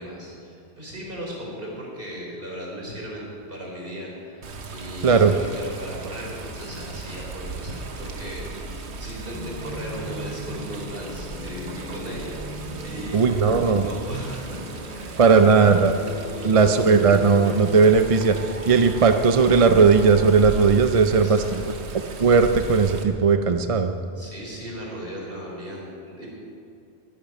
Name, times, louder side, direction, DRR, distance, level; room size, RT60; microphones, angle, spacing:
voice 1, 0.0-16.7 21.1-21.6 24.2-26.3, equal, 55° right, -3 dB, 4.2 m, -37 dB
Water, 4.4-23.0, right 3 dB, 85° right, 1.3 m, -37 dB
voice 2, 5.0-5.4 13.1-13.9 15.2-15.9 16.4-21.6 22.2-23.9, right 5 dB, 40° right, 7 dB, 0.5 m, -17 dB
sound 1, 9.3-20.7, left 1 dB, ahead, 2.9 m, -39 dB
21.0 x 10.5 x 5.3 m, 2.6 s
omnidirectional pair, 1.1 m